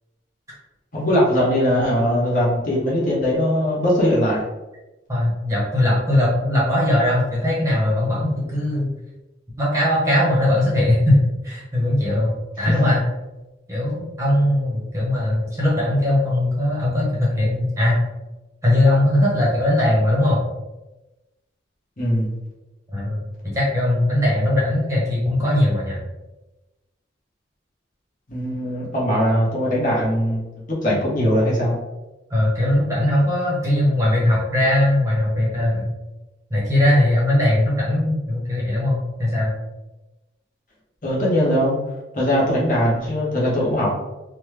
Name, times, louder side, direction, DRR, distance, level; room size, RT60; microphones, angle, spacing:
voice 1, 0.9-4.4 22.0-22.3 28.3-31.8 41.0-41.8 42.1-43.9, equal, 45° left, -6 dB, 1.0 m, -20 dB
voice 2, 5.1-9.0 9.6-13.0 13.7-18.0 18.6-20.4 22.9-23.2 23.5-26.0 30.9-31.0 32.3-35.9 36.5-39.5, left 1 dB, 15° right, -6 dB, 0.9 m, -20 dB
3.1 x 2.1 x 3.2 m, 1.0 s
head